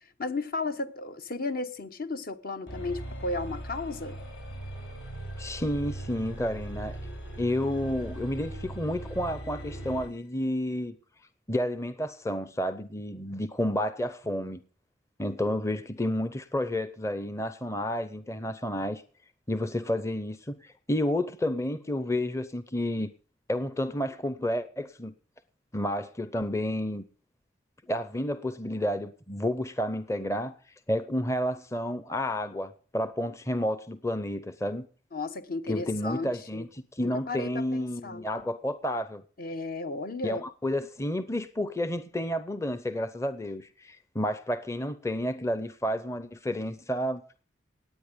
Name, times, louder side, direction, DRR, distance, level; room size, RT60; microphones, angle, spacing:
voice 1, 0.2-4.2 35.1-36.7 37.0-38.2 39.4-40.4, left 3 dB, 50° left, 0.9 m, -34 dB
sound 1, 2.7-10.2, right 1 dB, 80° left, 5.3 m, -39 dB
voice 2, 5.4-7.0 7.4-10.9 11.5-14.6 15.2-19.0 19.5-23.1 23.5-25.1 25.7-27.0 27.9-30.6 30.9-34.9 35.7-39.2 40.2-47.2, left 1 dB, 15° left, 0.7 m, -30 dB
18.5 x 8.9 x 5.2 m
head